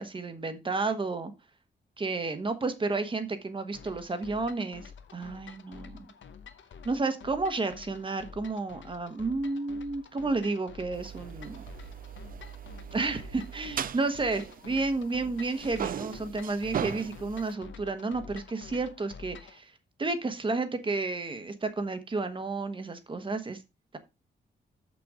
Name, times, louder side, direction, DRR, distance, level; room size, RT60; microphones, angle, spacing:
voice 1, 0.0-1.3 2.0-6.1 6.8-11.6 12.9-19.7 20.0-23.6, right 3 dB, 25° right, 9 dB, 1.0 m, -31 dB
sound 1, 3.7-19.6, left 6 dB, 85° left, 0.9 m, -49 dB
sound 2, 10.9-15.2 15.4-17.5, right 9 dB, 50° right, 0.4 m, -38 dB
6.8 x 6.2 x 4.9 m, 0.26 s
wide cardioid pair, 175°, 19 cm